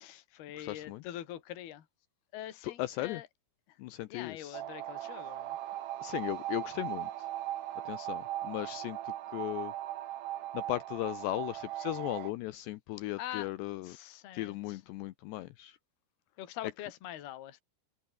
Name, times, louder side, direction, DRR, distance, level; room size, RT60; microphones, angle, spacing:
voice 1, 0.0-1.9 2.3-3.3 3.7-3.8 4.1-5.6 13.2-13.5 13.8-14.8 16.4-17.6, left 12 dB, 55° left, 3.9 m, -44 dB
voice 2, 0.6-1.0 2.6-3.2 3.8-4.6 6.0-7.1 7.9-9.7 10.5-14.0 14.3-15.8, left 16 dB, 85° left, 2.4 m, -37 dB
sound 1, 4.5-12.3, right 13 dB, 75° right, 4.3 m, -39 dB
omnidirectional pair, 6.0 m